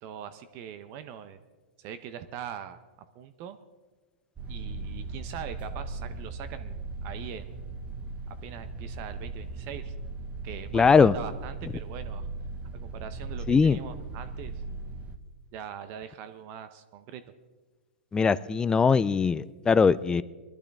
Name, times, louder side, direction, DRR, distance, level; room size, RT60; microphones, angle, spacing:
voice 1, 0.0-1.4 1.8-2.8 3.1-3.6 4.5-7.5 8.3-9.9 10.4-12.3 12.7-14.6 15.5-17.2, right 9 dB, 40° right, 11 dB, 0.8 m, -42 dB
sound 1, 4.4-15.2, right 3 dB, 20° right, 1.0 m, -38 dB
voice 2, 10.7-11.1 13.5-13.8 18.1-20.2, left 5 dB, 10° left, 17 dB, 0.4 m, -21 dB
22.0 x 12.0 x 3.5 m, 1.3 s
hypercardioid pair, 130°, 6 cm